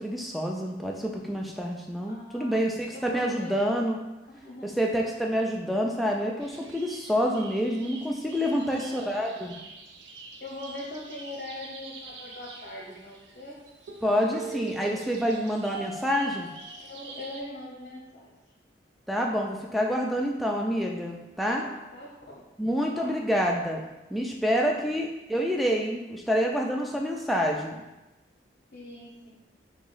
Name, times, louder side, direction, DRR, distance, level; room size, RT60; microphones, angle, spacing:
voice 1, 0.0-4.0 4.6-9.5 14.0-16.5 19.1-21.6 22.6-23.8 24.1-27.8, equal, ahead, -1 dB, 0.4 m, -27 dB
voice 2, 2.1-2.6 2.9-3.7 4.3-4.8 8.5-9.6 10.4-13.6 16.9-18.3 21.1-22.4 22.9-23.1 24.6-25.0 28.7-29.3, left 1 dB, 50° left, -5 dB, 0.8 m, -42 dB
sound 1, 6.4-17.4, right 4 dB, 70° right, 0.5 m, -44 dB
3.6 x 3.0 x 3.9 m, 1.0 s
head